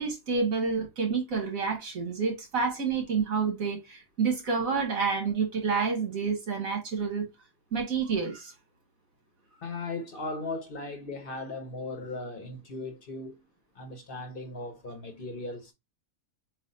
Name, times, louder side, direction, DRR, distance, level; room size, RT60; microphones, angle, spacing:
voice 1, 0.0-7.3 7.7-8.5, right 5 dB, 75° right, 1.9 m, -29 dB
voice 2, 9.6-13.4 13.7-15.7, left 2 dB, 45° left, 1.0 m, -37 dB
7.7 x 2.6 x 2.6 m
omnidirectional pair, 1.4 m